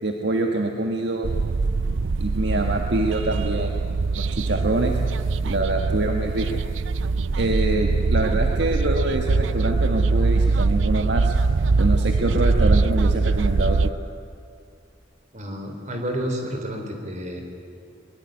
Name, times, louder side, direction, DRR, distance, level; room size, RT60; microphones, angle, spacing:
voice 1, 0.0-1.3 2.2-3.9 4.2-5.0 5.4-6.5 7.4-11.3 11.8-13.9, right 2 dB, 60° right, 3 dB, 1.6 m, -25 dB
sound 1, 1.2-13.9, right 3 dB, 90° right, 0.5 m, -22 dB
voice 2, 15.3-17.4, equal, 40° right, 3 dB, 3.9 m, -30 dB
22.0 x 21.0 x 9.4 m, 2.4 s
head